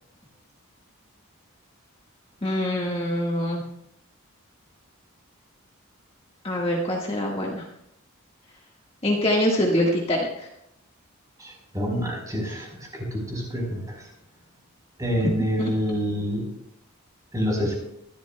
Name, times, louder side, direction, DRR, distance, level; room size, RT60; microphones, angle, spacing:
voice 1, 2.4-3.6 6.4-7.7 9.0-10.5 15.6-15.7, left 1 dB, 25° left, -3 dB, 1.6 m, -24 dB
voice 2, 11.4-12.7 13.1-13.8 15.0-16.4 17.3-17.7, equal, 15° right, 0 dB, 4.1 m, -26 dB
23.5 x 12.0 x 2.3 m, 0.79 s
head